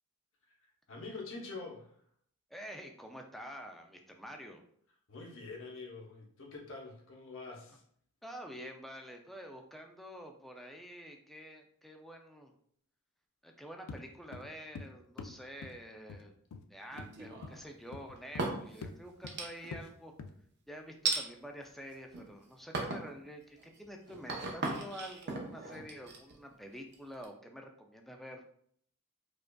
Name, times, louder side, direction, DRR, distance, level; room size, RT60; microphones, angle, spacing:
voice 1, 0.9-1.9 5.1-7.8, left 3 dB, 60° left, 0 dB, 0.8 m, -45 dB
voice 2, 2.5-4.6 7.5-7.6 8.2-12.5 13.4-16.3 16.7-20.1 20.7-28.4, equal, ahead, 3 dB, 0.3 m, -48 dB
sound 1, 13.9-14.1 14.3-14.9 15.2-15.4 15.6-15.8 16.1-16.2 16.5-16.6 17.0-17.1 17.4-17.6 17.9-18.6 18.8-19.0 19.2-19.4 19.7-19.9 20.2-20.3, left 4 dB, 85° left, 0.4 m, -44 dB
sound 2, 16.9-17.6 18.2-18.8 19.3-19.9 21.1-21.2 21.9-22.3 22.7-23.1 23.6-27.3, right 3 dB, 50° right, 0.6 m, -37 dB
4.8 x 2.4 x 2.2 m, 0.64 s
head